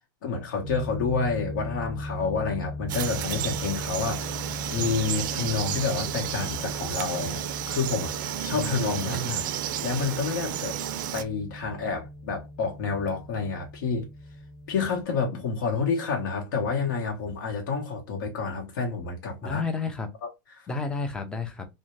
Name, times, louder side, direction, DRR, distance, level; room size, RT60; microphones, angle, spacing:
voice 1, 0.2-8.1 8.4-9.4 9.8-10.7 11.1-14.0 14.7-19.6, left 4 dB, 75° left, 0.9 m, -29 dB
sound 1, 0.6-15.0, left 1 dB, 45° left, 1.0 m, -39 dB
Frog, 2.9-11.2, right 11 dB, 75° right, 0.4 m, -32 dB
voice 2, 9.1-9.4 19.4-20.1 20.7-21.7, left 4 dB, 10° left, 0.4 m, -31 dB
2.6 x 2.1 x 3.0 m
supercardioid pair, 160°, 11 cm